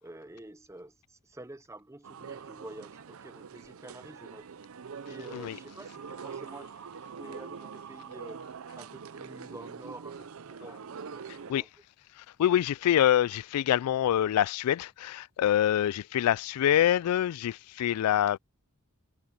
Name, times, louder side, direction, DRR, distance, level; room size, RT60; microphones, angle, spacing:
voice 1, 0.0-4.5 5.1-6.8 7.2-8.4 8.8-10.8 11.2-11.7, right 1 dB, 15° right, 0.6 m, -48 dB
sound 1, 2.0-11.5, right 6 dB, 70° right, 0.5 m, -44 dB
voice 2, 12.2-18.4, left 11 dB, 90° left, 0.3 m, -25 dB
head